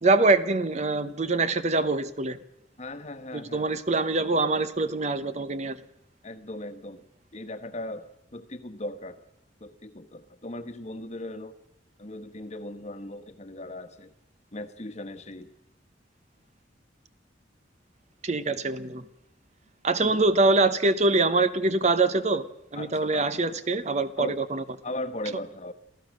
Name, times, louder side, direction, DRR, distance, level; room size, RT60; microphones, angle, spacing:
voice 1, 0.0-2.4 3.3-5.8 18.2-19.1 19.8-22.5 22.7-24.6, right 3 dB, 40° right, 13 dB, 0.9 m, -24 dB
voice 2, 2.8-3.6 6.2-7.0 7.3-9.2 9.6-11.6 12.0-14.1 14.5-15.5 20.0-20.2 22.8-23.3 24.2-24.4 24.8-25.7, left 1 dB, 40° left, 9 dB, 1.3 m, -38 dB
27.5 x 15.0 x 6.4 m, 0.83 s
head